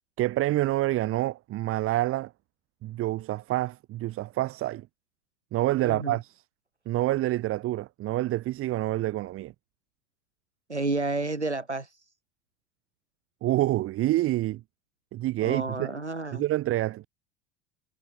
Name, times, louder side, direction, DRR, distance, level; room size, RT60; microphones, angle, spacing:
voice 1, 0.2-2.3 2.8-4.9 5.5-6.4 6.9-9.5 13.4-14.6 15.1-15.9 16.3-17.1, right 16 dB, 40° right, 4.8 m, -27 dB
voice 2, 5.8-6.2 10.7-12.0 15.4-16.5, right 2 dB, 90° right, 1.8 m, -31 dB
figure-of-eight pair, 75°, 33 cm